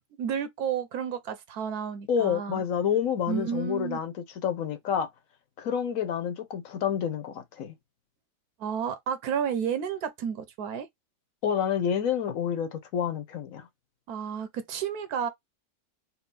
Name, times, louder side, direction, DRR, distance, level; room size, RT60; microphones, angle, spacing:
voice 1, 0.2-2.6 3.3-4.0 8.6-10.9 14.1-15.3, right 7 dB, 80° right, 1.3 m, -31 dB
voice 2, 2.1-4.1 4.4-5.1 5.6-7.7 11.4-13.7, left 8 dB, 65° left, 1.2 m, -28 dB
4.4 x 2.1 x 4.0 m
omnidirectional pair, 1.6 m